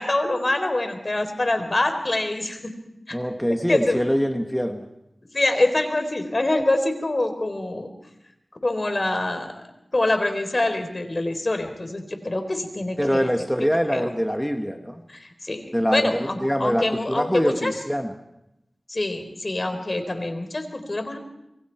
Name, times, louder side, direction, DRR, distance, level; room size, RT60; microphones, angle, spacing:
voice 1, 0.0-2.7 3.1-3.2 3.7-4.0 5.3-7.9 8.6-9.6 9.9-13.3 13.9-14.1 15.1-17.7 18.9-21.2, left 2 dB, 50° left, 7 dB, 4.1 m, -25 dB
voice 2, 3.1-4.9 13.0-15.0 15.7-18.1, equal, 5° left, 4 dB, 1.9 m, -24 dB
27.5 x 23.5 x 4.7 m, 0.85 s
cardioid pair, 40°, 0 cm